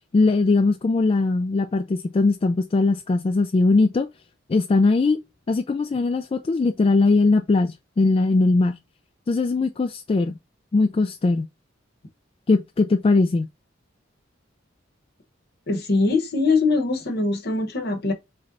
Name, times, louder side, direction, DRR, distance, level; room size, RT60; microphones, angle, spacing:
voice 1, 0.1-4.1 4.5-5.2 5.5-8.8 9.3-10.4 10.7-11.5 12.5-13.5, left 3 dB, 30° left, 0.3 m, -20 dB
voice 2, 15.7-18.1, left 3 dB, 55° left, 1.0 m, -22 dB
3.8 x 3.2 x 4.0 m
head